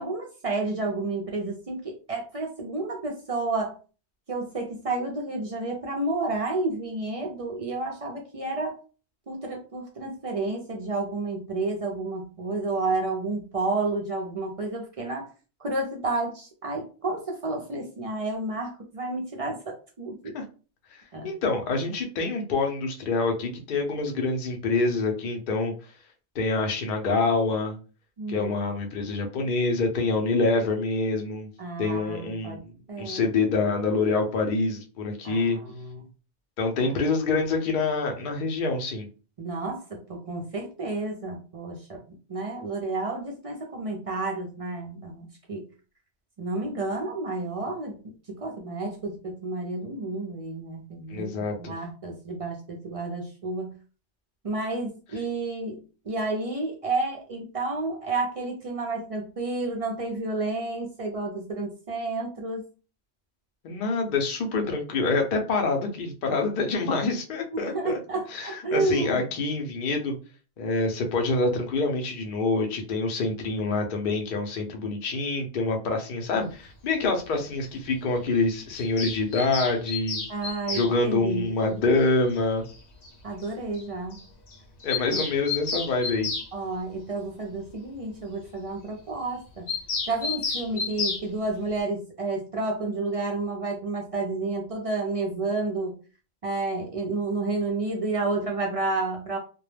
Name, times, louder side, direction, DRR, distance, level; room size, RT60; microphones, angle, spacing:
voice 1, 0.0-3.8 4.3-8.8 9.3-15.3 15.6-20.3 21.1-21.3 28.2-28.5 31.6-32.6 32.9-33.3 35.2-36.0 36.8-36.9 39.4-42.0 42.3-45.6 46.4-47.9 48.3-53.7 54.4-55.8 56.1-62.6 67.7-69.2 80.3-81.8 83.2-84.2 86.5-89.7 90.1-95.9 96.4-99.4, right 3 dB, 50° right, 1 dB, 0.4 m, -30 dB
voice 2, 20.9-25.7 26.3-27.8 28.3-31.5 31.8-32.6 33.0-35.6 36.6-39.1 51.1-51.7 63.6-68.0 68.3-70.1 70.6-80.2 80.7-82.6 84.8-86.3, left 3 dB, 55° left, 3 dB, 0.6 m, -26 dB
Bird vocalization bird call bird song, 78.7-80.9 82.3-82.4 82.7-82.8 83.0-83.1 83.4-83.5 83.7-83.8 84.1-84.2 84.5-86.5 89.7-91.2, left 4 dB, 70° left, 1.0 m, -31 dB
2.2 x 2.0 x 3.1 m, 0.36 s
omnidirectional pair, 1.2 m